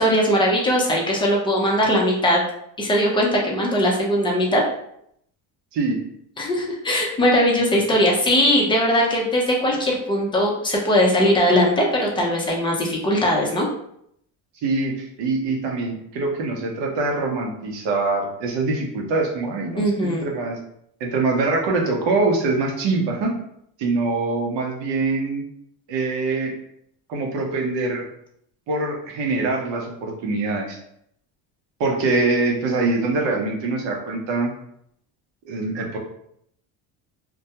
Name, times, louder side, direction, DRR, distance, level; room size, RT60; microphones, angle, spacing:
voice 1, 0.0-2.4 2.8-4.6 6.4-13.7 19.8-20.2, equal, 10° left, -2 dB, 0.5 m, -20 dB
voice 2, 5.7-6.1 14.6-20.6 21.0-23.4 23.8-25.4 25.9-26.5 27.1-28.0 28.7-30.8 31.8-34.5 35.5-36.0, right 3 dB, 65° right, 1 dB, 0.8 m, -24 dB
2.2 x 2.2 x 2.8 m, 0.72 s
cardioid pair, 100°, 48 cm